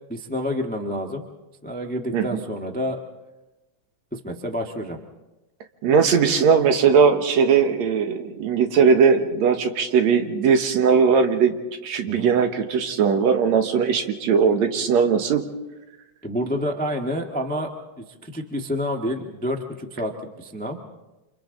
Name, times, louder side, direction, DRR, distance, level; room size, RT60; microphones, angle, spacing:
voice 1, 0.1-1.2 1.6-3.0 4.1-5.0 12.1-12.3 16.2-17.7 18.2-20.1 20.4-20.8, equal, 5° left, 3 dB, 0.6 m, -28 dB
voice 2, 5.8-11.5 11.8-15.4, right 6 dB, 70° right, 6 dB, 2.5 m, -19 dB
28.5 x 26.5 x 3.9 m, 1.1 s
omnidirectional pair, 3.4 m